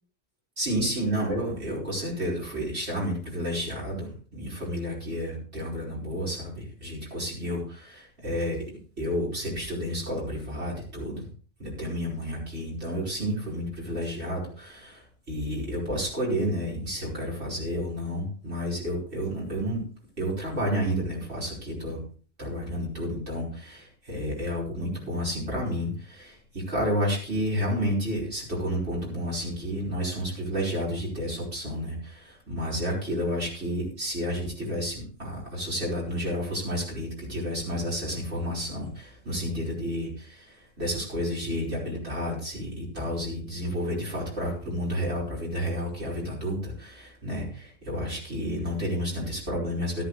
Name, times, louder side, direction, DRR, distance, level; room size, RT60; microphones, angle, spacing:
voice 1, 0.6-8.6 9.0-11.3 11.6-19.9 20.2-22.0 22.4-50.0, equal, 65° right, -3 dB, 5.5 m, -31 dB
13.5 x 13.0 x 3.3 m, 0.41 s
omnidirectional pair, 1.2 m